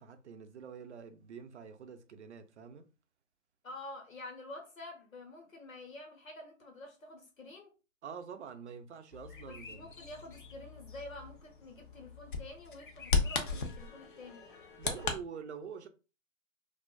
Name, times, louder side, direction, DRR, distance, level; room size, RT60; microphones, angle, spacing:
voice 1, 0.0-2.9 8.0-9.9 14.8-15.9, right 6 dB, 60° right, 0.5 m, -46 dB
voice 2, 3.6-7.7 9.5-14.4, left 2 dB, 85° left, 1.1 m, -48 dB
Bird vocalization bird call bird song, 9.1-15.2, left 4 dB, 40° left, 0.4 m, -37 dB
2.4 x 2.2 x 2.3 m
figure-of-eight pair, 140°, 39 cm